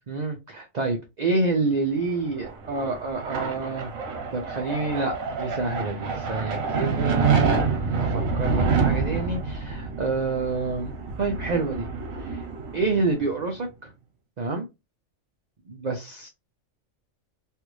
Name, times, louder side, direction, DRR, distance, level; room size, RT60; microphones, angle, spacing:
voice 1, 0.1-4.0 4.3-11.9 12.2-12.5 12.7-13.9 14.4-14.7 15.7-16.3, right 3 dB, 45° right, 2 dB, 0.5 m, -28 dB
sound 1, 2.1-13.4, right 5 dB, 80° right, 1.2 m, -27 dB
3.3 x 2.4 x 3.0 m, 0.23 s
omnidirectional pair, 1.4 m